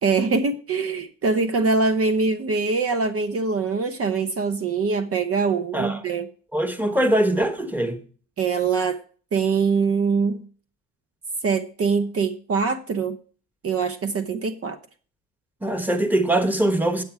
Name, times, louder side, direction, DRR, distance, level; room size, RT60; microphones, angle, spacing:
voice 1, 0.0-6.3 8.4-9.0 9.3-10.4 11.4-13.2 13.6-14.8, right 4 dB, 50° right, 0.9 m, -23 dB
voice 2, 6.5-8.0 15.6-17.0, right 1 dB, 5° right, 1.3 m, -22 dB
8.5 x 8.4 x 4.6 m
cardioid pair, 90°, 30 cm